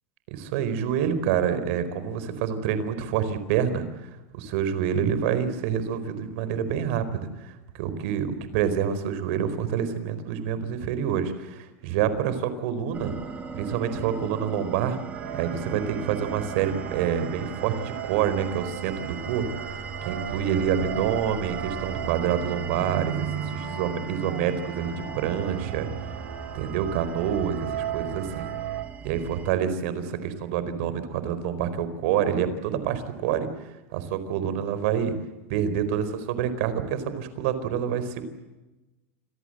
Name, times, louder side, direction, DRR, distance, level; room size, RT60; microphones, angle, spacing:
voice 1, 0.3-13.2 13.5-15.0 15.3-25.9 26.5-28.5 29.0-35.1 35.5-38.2, right 8 dB, 60° right, 12 dB, 4.4 m, -27 dB
sound 1, 12.9-29.5, right 5 dB, 20° right, 3.5 m, -39 dB
sound 2, 15.1-28.9, right 10 dB, 85° right, 4.2 m, -36 dB
28.5 x 23.5 x 7.9 m, 1.1 s
supercardioid pair, 160°, 8 cm